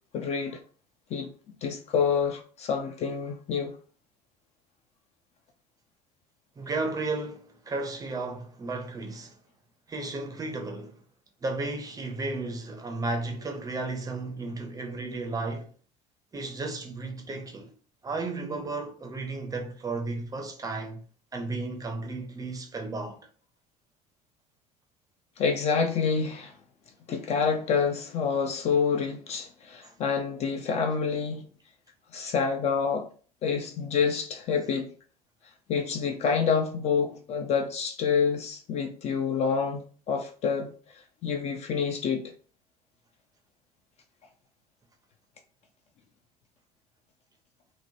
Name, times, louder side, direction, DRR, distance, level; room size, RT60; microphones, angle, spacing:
voice 1, 0.1-0.6 1.1-1.3 1.6-3.7 25.4-26.5 27.1-31.5 32.1-33.1 33.4-34.9 35.7-40.7 41.2-42.3, left 6 dB, 35° left, 0.4 m, -27 dB
voice 2, 6.6-9.3 9.9-11.0 11.4-15.7 16.3-17.7 18.0-21.0 21.3-23.3 29.8-29.9, right 3 dB, 20° right, 0.5 m, -34 dB
2.8 x 2.1 x 2.7 m
figure-of-eight pair, 65°, 20 cm